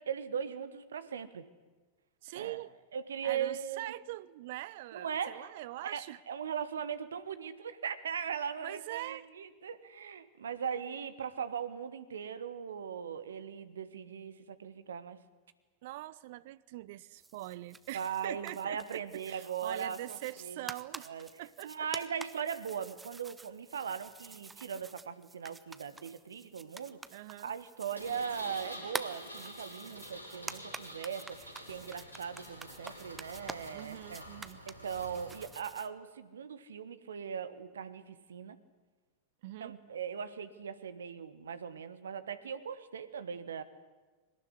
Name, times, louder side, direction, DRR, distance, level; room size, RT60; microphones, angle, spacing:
voice 1, 0.0-1.5 2.3-2.6 2.9-3.9 4.9-5.5 5.8-15.2 17.9-20.6 21.0-27.0 27.4-34.2 34.7-38.6 39.6-43.6, right 7 dB, 65° right, 13 dB, 1.4 m, -39 dB
voice 2, 2.2-2.7 3.2-6.2 8.6-9.3 15.8-21.1 21.4-21.9 27.1-27.5 33.7-34.6 39.4-39.7, right 17 dB, 50° right, 19 dB, 0.7 m, -43 dB
sound 1, 17.2-35.9, right 3 dB, 10° right, 1.0 m, -48 dB
Engine, 27.9-35.4, equal, 85° left, 4.9 m, -48 dB
21.5 x 19.0 x 9.8 m, 1.3 s
figure-of-eight pair, 90°, 0 cm